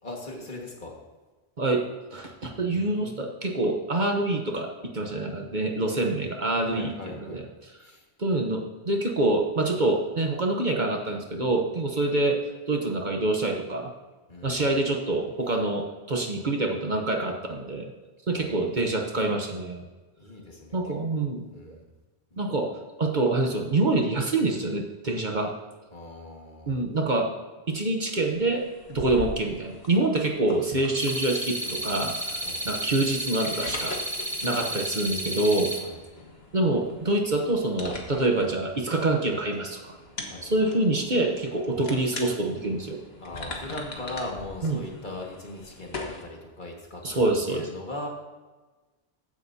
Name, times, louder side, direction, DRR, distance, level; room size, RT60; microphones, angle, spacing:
voice 1, 0.0-0.9 2.7-3.3 6.7-7.4 7.8-8.0 14.3-14.6 18.3-18.5 20.2-20.9 21.5-21.8 22.3-22.4 25.9-26.8 32.4-32.6 35.8-36.0 40.2-40.5 43.2-48.1, left 2 dB, 45° left, 0 dB, 2.0 m, -39 dB
voice 2, 2.1-7.8 8.2-12.4 12.7-13.9 14.4-17.9 18.3-19.9 20.7-21.7 22.4-25.5 26.7-27.3 27.7-34.0 34.4-35.7 36.5-40.0 40.4-43.0 44.6-44.8 47.0-47.7, right 2 dB, 45° right, 2 dB, 1.1 m, -26 dB
sound 1, 28.1-46.2, left 2 dB, 65° left, 1.7 m, -42 dB
sound 2, 31.0-35.8, right 1 dB, 60° right, 1.9 m, -32 dB
15.0 x 10.0 x 2.8 m, 1.2 s
omnidirectional pair, 1.1 m